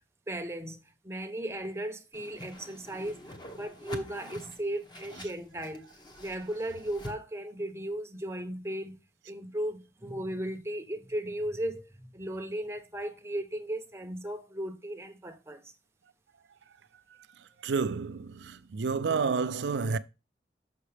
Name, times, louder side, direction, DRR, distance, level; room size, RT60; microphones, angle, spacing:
voice 1, 0.3-0.8 1.0-5.8 6.2-9.0 9.3-15.6, right 1 dB, 15° right, 0.8 m, -36 dB
Whoosh swoosh swish, 2.1-7.2, left 1 dB, 25° left, 1.0 m, -46 dB
voice 2, 17.6-20.0, right 5 dB, 85° right, 0.5 m, -30 dB
6.5 x 5.7 x 3.3 m
head